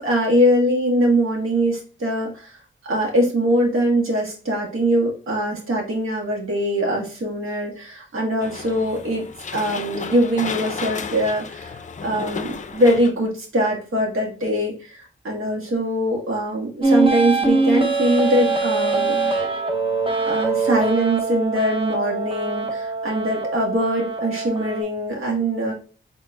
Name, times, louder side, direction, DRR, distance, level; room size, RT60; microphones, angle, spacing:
voice 1, 0.0-2.5 2.9-11.7 12.0-19.2 20.3-25.7, equal, 80° right, -2 dB, 1.8 m, -22 dB
sound 1, 8.4-13.1, left 5 dB, 35° left, 0.5 m, -33 dB
sound 2, 16.8-24.8, right 3 dB, 25° right, 0.8 m, -23 dB
4.3 x 4.3 x 2.4 m, 0.40 s
wide cardioid pair, 145°, 21 cm